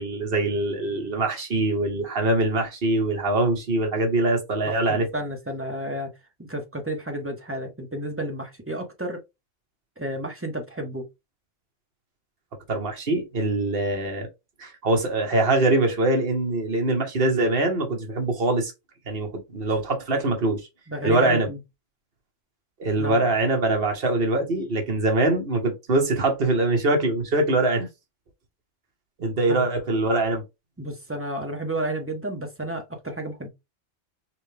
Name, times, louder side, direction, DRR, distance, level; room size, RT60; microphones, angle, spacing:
voice 1, 0.0-5.1 12.7-14.3 14.6-18.7 19.1-20.6 21.0-21.5 22.8-27.9 29.2-30.4, right 2 dB, 55° right, 1.4 m, -23 dB
voice 2, 4.7-6.1 6.4-9.2 10.0-11.1 20.9-21.6 23.0-23.3 29.5-29.7 30.8-33.5, right 1 dB, 15° right, 0.8 m, -31 dB
5.7 x 2.3 x 3.3 m
omnidirectional pair, 1.2 m